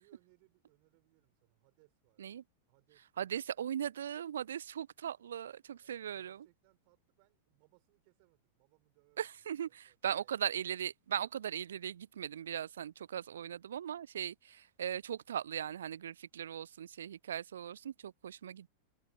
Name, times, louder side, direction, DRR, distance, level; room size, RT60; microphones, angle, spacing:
voice 1, 0.0-2.4 2.7-3.5 5.7-10.3, right 39 dB, 45° right, 6.8 m, -71 dB
voice 2, 3.2-6.5 9.2-18.7, right 9 dB, 65° right, 0.5 m, -39 dB
figure-of-eight pair, 90°, 0 cm